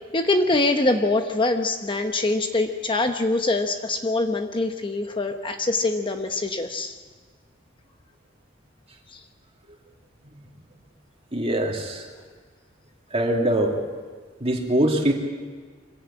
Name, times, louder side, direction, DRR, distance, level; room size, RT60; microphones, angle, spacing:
voice 1, 0.1-6.9 9.1-9.2, left 2 dB, 25° left, 6 dB, 1.0 m, -24 dB
voice 2, 11.3-12.0 13.1-13.7 14.4-15.1, right 1 dB, 30° right, 1 dB, 2.8 m, -22 dB
24.5 x 16.0 x 8.7 m, 1.5 s
head